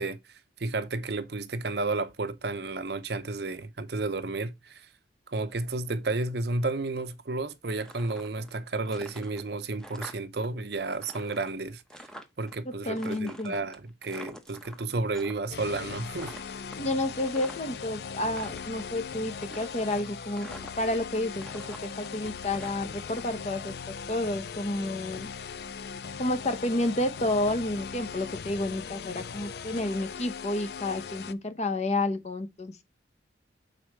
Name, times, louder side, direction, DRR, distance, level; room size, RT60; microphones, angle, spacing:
voice 1, 0.0-4.9 5.3-12.0 12.4-16.3, right 3 dB, 60° right, 0.7 m, -32 dB
sound 1, 7.7-8.6 8.9-10.5 10.7-12.6 13.0-15.3 15.6-15.9 16.2-17.8 18.2-18.9 19.4-20.0 20.4-21.1 21.4-23.2, equal, 5° left, 0.8 m, -47 dB
voice 2, 12.7-13.6 16.8-20.5 20.8-25.3 26.2-32.8, left 1 dB, 35° left, 0.8 m, -30 dB
sound 2, 15.5-31.3, left 6 dB, 55° left, 0.4 m, -39 dB
6.3 x 4.3 x 4.5 m
head